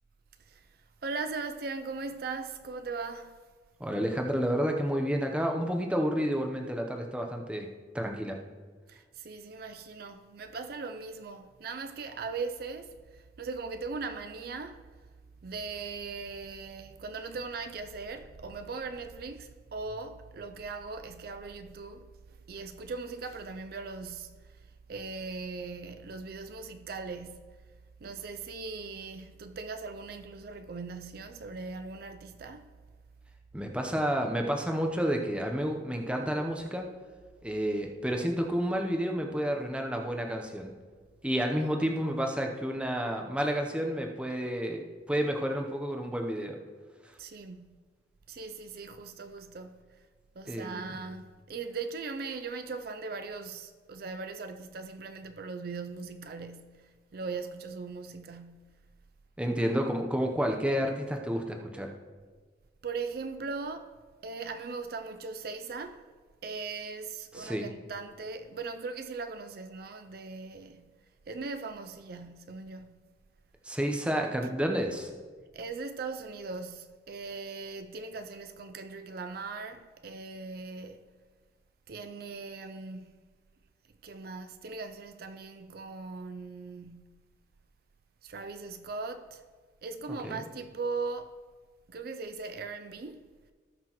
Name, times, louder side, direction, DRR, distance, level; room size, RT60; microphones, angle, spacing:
voice 1, 0.5-3.4 8.9-14.8 15.4-27.6 28.0-32.7 47.2-47.8 48.3-50.0 50.4-58.8 62.8-63.9 64.2-66.1 66.4-70.9 71.3-73.1 75.5-81.0 81.9-83.2 84.0-87.2 88.2-89.4 89.8-91.4 91.9-93.3, right 4 dB, 55° right, 0.4 m, -39 dB
voice 2, 3.8-7.7 7.9-8.4 33.5-36.9 37.4-40.7 41.2-46.6 50.5-50.9 59.4-61.9 67.3-67.7 73.6-75.1 90.2-90.4, equal, 5° right, 0.8 m, -30 dB
17.5 x 6.0 x 3.0 m
head